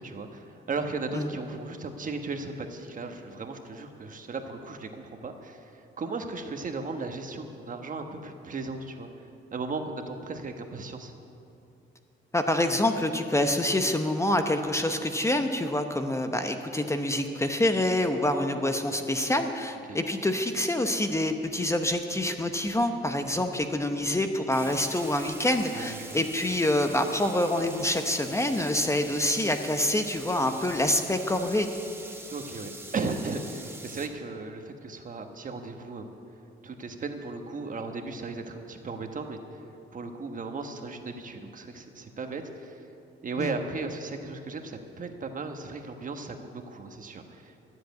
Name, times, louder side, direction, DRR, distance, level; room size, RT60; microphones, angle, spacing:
voice 1, 0.0-11.1 19.9-20.0 25.7-26.2 32.3-36.1 36.6-39.6 39.9-42.9 43.2-47.6, right 3 dB, 40° right, 5 dB, 1.3 m, -36 dB
voice 2, 12.3-31.7 43.4-43.5, left 1 dB, 15° left, 6 dB, 0.9 m, -26 dB
sound 1, 24.5-34.1, right 2 dB, 10° right, 1.5 m, -44 dB
13.0 x 7.8 x 9.3 m, 2.7 s
cardioid pair, 90°, 20 cm